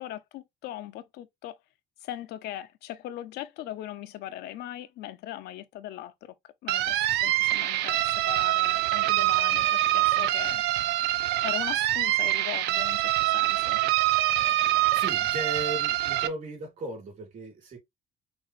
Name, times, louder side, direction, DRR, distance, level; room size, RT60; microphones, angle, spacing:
voice 1, 0.0-1.6 2.0-10.6 11.4-13.8, left 13 dB, 80° left, 0.6 m, -39 dB
sound 1, 6.7-16.3, right 15 dB, 85° right, 0.5 m, -25 dB
voice 2, 14.9-17.8, right 2 dB, 50° right, 3.4 m, -36 dB
6.0 x 2.6 x 3.1 m
cardioid pair, 110°, 17 cm